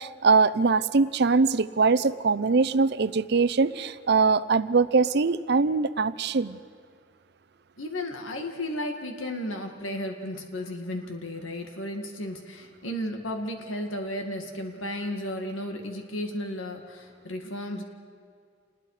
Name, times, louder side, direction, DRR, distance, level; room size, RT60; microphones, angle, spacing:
voice 1, 0.0-6.6, right 4 dB, 55° right, 16 dB, 0.6 m, -22 dB
voice 2, 7.8-17.8, left 1 dB, 90° left, 4 dB, 2.0 m, -34 dB
28.0 x 20.5 x 4.9 m, 2.1 s
head